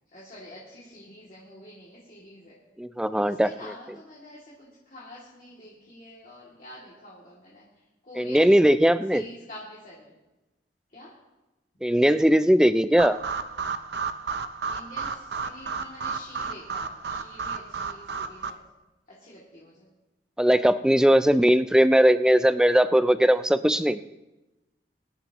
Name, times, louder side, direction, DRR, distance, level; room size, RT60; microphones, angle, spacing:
voice 1, 0.1-2.5 3.4-7.6 8.1-8.6 9.1-9.9 10.9-11.1 14.7-18.6 19.2-19.7, left 1 dB, 45° left, -7 dB, 2.5 m, -46 dB
voice 2, 2.8-3.7 8.1-9.2 11.8-13.2 20.4-24.0, equal, 5° right, 12 dB, 0.3 m, -19 dB
sound 1, 13.0-18.5, right 5 dB, 70° right, 0.7 m, -33 dB
23.0 x 10.5 x 3.0 m, 1.0 s
head